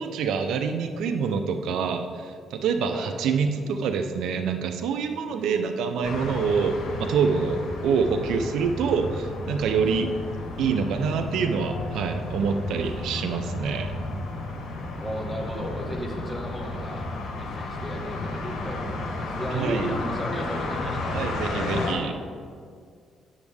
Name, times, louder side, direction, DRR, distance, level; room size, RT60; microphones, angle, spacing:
voice 1, 0.0-10.1 10.6-13.9 19.5-19.9 21.1-22.2, right 5 dB, 80° right, 7 dB, 0.5 m, -26 dB
voice 2, 5.3-5.6 15.0-17.1 17.4-21.2, equal, 5° right, 0 dB, 1.6 m, -34 dB
sound 1, 6.0-21.9, left 2 dB, 85° left, 1.5 m, -33 dB
9.8 x 7.1 x 3.5 m, 2.1 s
cardioid pair, 90°, 0 cm